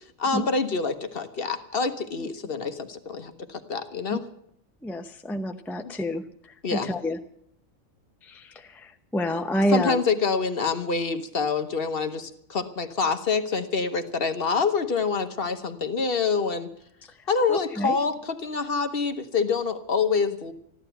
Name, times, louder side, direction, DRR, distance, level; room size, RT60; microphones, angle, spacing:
voice 1, 0.2-4.2 5.8-5.9 6.6-6.9 9.7-16.7 17.3-20.5, left 5 dB, 45° left, 9 dB, 1.1 m, -26 dB
voice 2, 4.8-6.2 6.7-7.2 8.2-10.0 17.5-18.0, equal, ahead, 6 dB, 0.5 m, -28 dB
14.5 x 11.5 x 7.9 m, 0.71 s
omnidirectional pair, 1.4 m